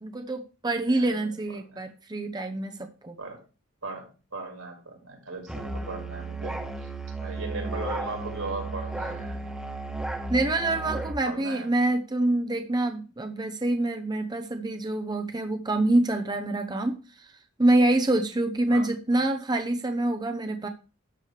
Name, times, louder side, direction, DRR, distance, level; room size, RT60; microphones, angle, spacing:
voice 1, 0.0-2.8 3.0-3.2 10.3-17.3 17.6-20.7, right 2 dB, 20° right, 6 dB, 0.7 m, -26 dB
voice 2, 0.9-1.4 1.7-1.8 3.2-3.4 3.8-6.6 7.2-9.5 10.6-10.9 11.2-11.7 18.7-18.9 19.1-19.2, right 3 dB, 85° right, 0 dB, 5.2 m, -38 dB
Musical instrument, 5.5-11.2, right 2 dB, 5° right, 1.3 m, -34 dB
12.5 x 8.2 x 3.3 m, 0.33 s
head